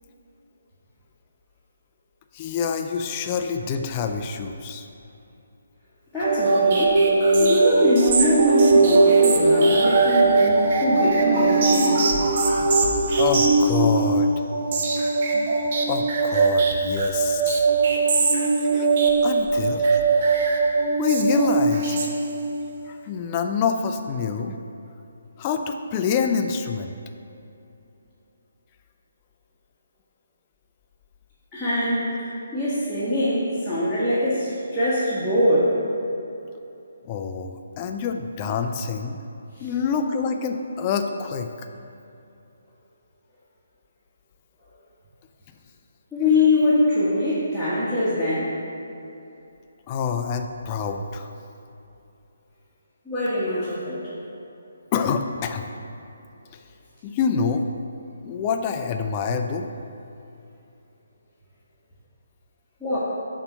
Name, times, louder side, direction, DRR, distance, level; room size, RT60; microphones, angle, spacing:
voice 1, 2.3-4.9 13.2-14.4 15.9-17.7 18.6-18.9 19.2-20.0 21.0-22.0 22.9-24.6 25.4-26.9 37.0-39.2 39.6-41.5 49.9-51.3 54.9-55.7 57.0-57.7 58.2-59.7, left 6 dB, 25° left, 5 dB, 0.3 m, -26 dB
voice 2, 6.1-7.0 7.4-12.1 31.5-35.7 39.5-39.7 46.1-48.5 53.0-54.1 62.8-63.0, left 1 dB, ahead, -16 dB, 1.2 m, -23 dB
sound 1, 6.2-22.6, right 3 dB, 40° right, 0.6 m, -20 dB
6.6 x 3.0 x 5.6 m, 2.7 s
figure-of-eight pair, 140°, 0 cm